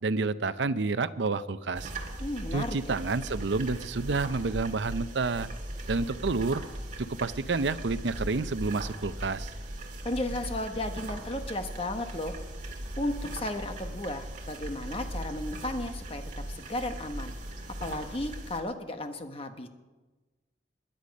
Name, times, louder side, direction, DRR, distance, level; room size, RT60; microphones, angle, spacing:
voice 1, 0.0-1.9 2.5-5.5 5.9-6.6 7.2-9.5, right 3 dB, 75° right, 14 dB, 0.6 m, -29 dB
sound 1, 1.7-18.6, right 1 dB, 40° right, 2.0 m, -39 dB
voice 2, 2.2-3.0 10.0-12.4 13.0-16.2 16.5-17.3 17.8-19.7, left 1 dB, 30° left, 6 dB, 1.1 m, -34 dB
22.0 x 10.0 x 5.3 m, 1.2 s
head